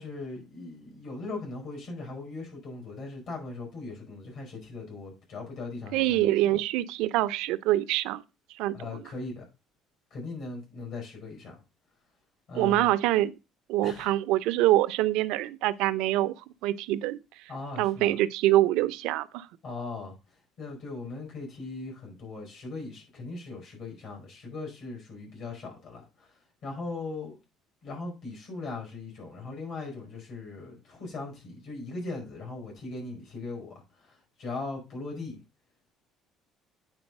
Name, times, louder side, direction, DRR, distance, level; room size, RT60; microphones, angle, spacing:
voice 1, 0.0-6.6 8.7-9.4 10.1-11.5 12.5-12.9 13.8-14.1 17.5-18.1 19.6-20.1 20.6-26.3 26.6-27.4 27.8-33.7 34.4-35.4, left 3 dB, 60° left, 4.9 m, -39 dB
voice 2, 5.9-8.2 8.6-9.0 12.5-13.3 13.7-16.4 16.6-17.2 17.8-19.5, right 15 dB, 80° right, 0.5 m, -25 dB
9.0 x 3.9 x 5.4 m
cardioid pair, 130°, 0 cm